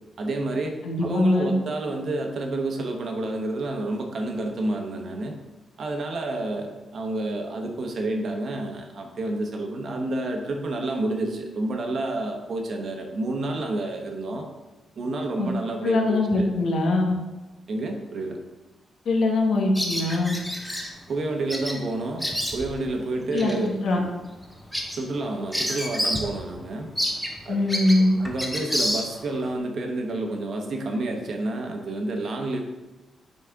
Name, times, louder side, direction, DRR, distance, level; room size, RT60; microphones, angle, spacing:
voice 1, 0.2-5.4 5.8-14.5 15.0-16.5 17.7-18.4 21.1-22.3 22.5-23.7 24.9-26.9 27.4-27.8 28.2-32.6, right 2 dB, 50° right, 3 dB, 1.0 m, -29 dB
voice 2, 0.8-1.5 15.4-15.5 15.8-17.1 19.0-20.3 23.3-24.0 27.5-28.2, left 2 dB, 65° left, 0 dB, 1.3 m, -22 dB
Bird vocalization bird call bird song, 19.7-20.9 21.5-21.8 22.0-22.8 23.3-23.6 24.0-24.1 24.4-26.3 26.6-26.7 27.0-29.4, equal, ahead, 0.9 m, -29 dB
9.4 x 4.1 x 3.6 m, 1.1 s
wide cardioid pair, 175°, 0 cm